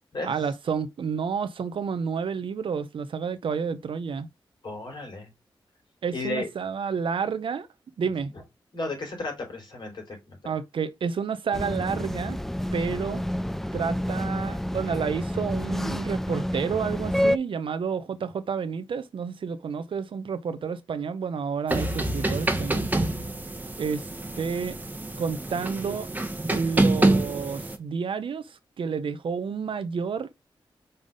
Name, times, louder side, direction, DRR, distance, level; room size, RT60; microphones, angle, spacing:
voice 1, 0.2-4.3 6.0-7.7 8.0-8.3 10.4-12.4 12.7-13.2 13.7-22.9 23.8-24.1 24.4-24.8 25.2-26.1 26.5-30.3, right 6 dB, 80° right, 0.7 m, -30 dB
voice 2, 4.6-5.3 6.1-6.5 8.0-8.1 8.7-10.5, left 2 dB, 60° left, 3.4 m, -34 dB
sound 1, 11.5-17.4, equal, 5° left, 0.3 m, -29 dB
sound 2, 21.7-27.8, right 2 dB, 20° right, 1.0 m, -26 dB
5.5 x 3.4 x 5.3 m
wide cardioid pair, 95°, 9 cm